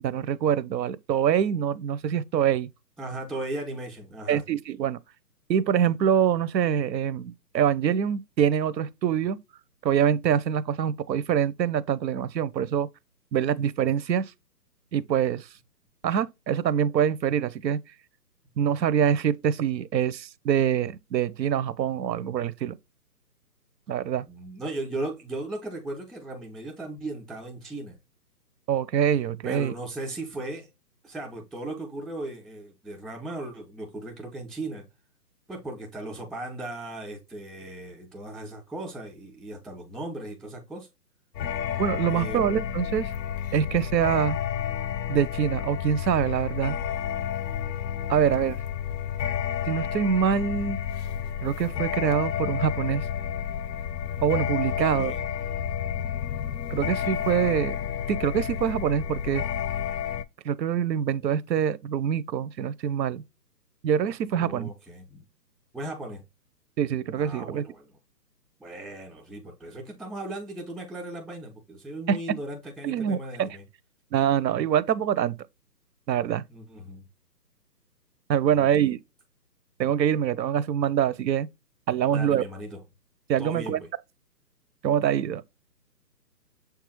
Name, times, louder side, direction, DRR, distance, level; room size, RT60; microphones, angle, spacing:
voice 1, 0.0-2.7 4.3-5.0 5.5-9.4 9.8-12.9 13.3-14.3 14.9-15.5 16.0-17.8 18.6-22.8 23.9-24.2 28.7-29.7 41.8-43.1 43.5-44.4 45.1-46.8 48.1-48.6 49.7-50.8 51.4-53.0 54.2-55.1 56.7-57.8 58.1-59.4 60.4-63.2 63.8-64.7 66.8-67.6 72.1-72.2 72.8-73.5 74.1-75.4 76.1-76.4 78.3-79.0 79.8-81.5 81.9-82.4 83.3-83.8 84.8-85.4, right 8 dB, 85° right, 0.6 m, -25 dB
voice 2, 3.0-4.4 24.3-28.0 29.4-30.7 31.0-34.8 35.5-40.9 42.1-42.4 54.6-55.2 64.3-65.2 65.7-66.2 67.2-67.9 68.6-73.6 76.5-77.1 78.5-78.9 82.0-82.8 83.4-83.9, right 2 dB, ahead, 0.4 m, -37 dB
sound 1, 41.3-60.2, left 9 dB, 85° left, 0.6 m, -30 dB
6.6 x 2.3 x 3.0 m
hypercardioid pair, 175°, 50 cm